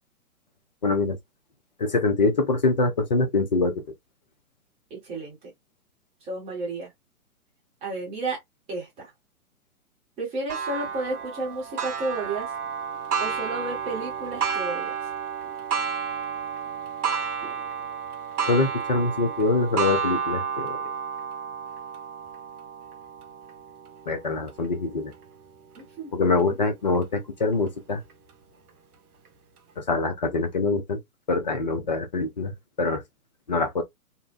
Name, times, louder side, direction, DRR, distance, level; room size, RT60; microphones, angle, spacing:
voice 1, 0.8-1.2 1.8-3.7 18.5-20.8 24.1-25.1 26.1-28.0 29.9-31.0 31.3-32.5 32.8-33.0 33.5-33.8, left 3 dB, 30° left, 0.4 m, -24 dB
voice 2, 4.9-5.5 6.2-6.9 7.8-8.4 8.7-9.1 10.2-12.5 13.2-14.9 25.7-26.6, right 2 dB, 15° right, 0.9 m, -32 dB
Clock, 10.5-25.8 26.4-26.5 27.0-27.1 28.1-28.2, right 6 dB, 75° right, 0.7 m, -31 dB
2.6 x 2.1 x 2.3 m
figure-of-eight pair, 125°, 45 cm